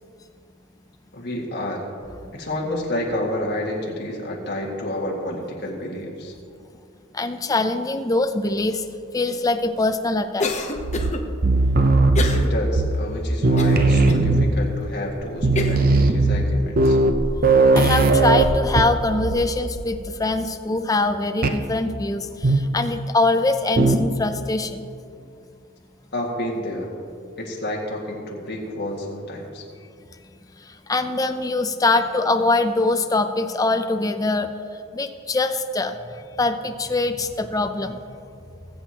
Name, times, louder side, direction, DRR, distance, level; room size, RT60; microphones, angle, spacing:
voice 1, 1.1-1.8 2.3-6.3 12.3-17.0 26.1-26.9 27.4-29.6, left 1 dB, 55° left, -2 dB, 1.9 m, -29 dB
voice 2, 7.1-8.8 9.1-10.8 17.7-24.8 30.9-34.5 34.9-35.9 36.4-38.0, left 2 dB, 15° left, 7 dB, 0.5 m, -23 dB
Cough, 10.4-11.2 12.1-12.5 12.9-13.0 13.6-14.2 14.8-14.9 15.6-15.9, left 3 dB, 35° left, 0.8 m, -27 dB
sound 1, 10.8-13.2 13.4-14.7 15.1-15.2 15.4-19.5 19.8-20.1 21.4-21.7 22.4-22.8 23.8-24.2, right 2 dB, 45° right, 0.6 m, -19 dB
20.5 x 7.9 x 2.9 m, 2.4 s
head